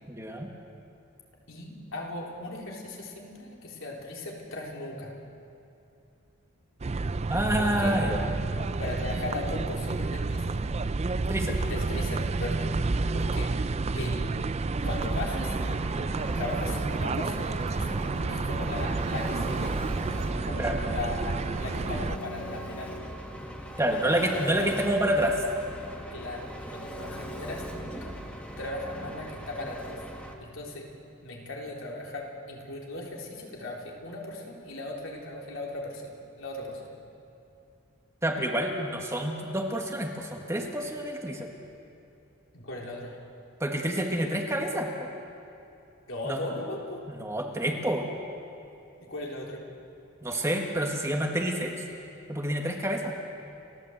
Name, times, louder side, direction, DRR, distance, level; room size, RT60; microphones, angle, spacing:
voice 1, 0.1-0.5 7.3-8.3 11.3-11.6 20.6-20.8 23.8-25.4 38.2-41.5 43.6-45.1 46.2-46.5 47.2-48.1 50.2-51.7 52.3-53.1, right 1 dB, 15° right, 1 dB, 1.6 m, -28 dB
voice 2, 1.5-5.1 7.5-7.9 8.8-10.5 11.6-12.7 13.1-13.5 13.9-14.4 14.8-15.5 16.3-18.0 18.3-19.7 20.4-22.9 24.0-24.7 26.1-28.1 28.6-30.0 30.4-30.9 31.2-36.1 36.4-36.9 42.5-43.2 46.1-47.0 49.0-49.6, left 2 dB, 65° left, -2 dB, 3.7 m, -38 dB
sound 1, 6.8-22.2, right 3 dB, 30° right, 0.4 m, -30 dB
Engine, 14.8-30.3, equal, 5° left, 1.8 m, -40 dB
29.5 x 13.0 x 7.9 m, 2.8 s
head